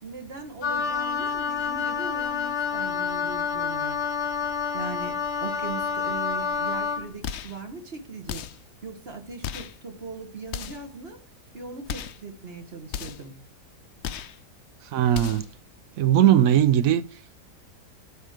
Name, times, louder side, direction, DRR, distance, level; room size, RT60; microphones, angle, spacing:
voice 1, 0.0-4.0 4.7-8.5 8.8-11.2 11.5-13.4, right 4 dB, 40° right, 1.4 m, -39 dB
Wind instrument woodwind instrument, 0.6-7.1, left 6 dB, 45° left, 1.2 m, -28 dB
sound 1, 7.2-7.6 8.3-8.7 9.4-9.8 10.5-10.9 11.8-12.2 12.9-13.3 14.0-14.4 15.1-15.5, left 9 dB, 85° left, 0.6 m, -35 dB
voice 2, 14.9-15.5 16.0-17.0, right 10 dB, 65° right, 0.9 m, -19 dB
8.2 x 5.2 x 7.7 m
omnidirectional pair, 1.8 m